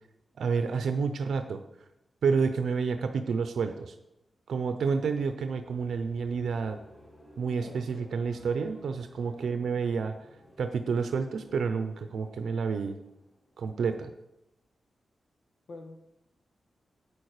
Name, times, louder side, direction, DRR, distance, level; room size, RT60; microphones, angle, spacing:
voice 1, 0.4-1.6 2.2-3.9 4.5-6.8 7.4-10.2 10.6-13.0 13.6-14.1, right 5 dB, 85° right, 8 dB, 0.6 m, -29 dB
sound 1, 4.9-14.0, equal, 25° left, 3.4 m, -56 dB
voice 2, 7.6-8.2 15.7-16.0, left 2 dB, 85° left, 2 dB, 1.8 m, -46 dB
8.7 x 8.6 x 4.9 m, 0.88 s
wide cardioid pair, 165°, 0 cm